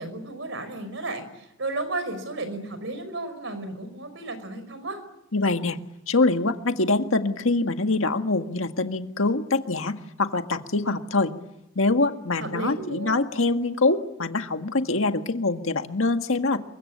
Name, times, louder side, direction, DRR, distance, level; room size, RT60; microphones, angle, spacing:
voice 1, 0.0-5.0 12.4-13.2, right 2 dB, 60° right, 11 dB, 5.4 m, -33 dB
voice 2, 5.3-5.8 6.1-11.3 11.8-16.6, left 3 dB, 75° left, 6 dB, 1.8 m, -24 dB
28.0 x 24.0 x 8.7 m, 0.85 s
head